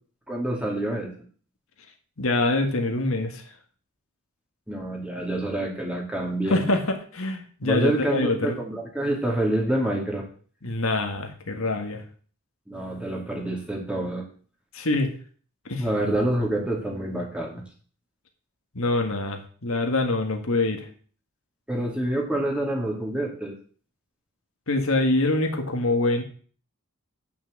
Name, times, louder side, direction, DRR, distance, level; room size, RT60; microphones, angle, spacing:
voice 1, 0.3-1.1 4.7-6.7 7.6-10.3 12.7-14.2 15.8-17.6 21.7-23.5, right 1 dB, 5° right, -1 dB, 2.4 m, -27 dB
voice 2, 2.2-3.4 6.5-8.6 10.6-12.1 14.7-15.1 15.7-15.9 18.7-20.9 24.7-26.2, left 2 dB, 65° left, 5 dB, 1.7 m, -25 dB
8.8 x 6.1 x 7.4 m, 0.43 s
head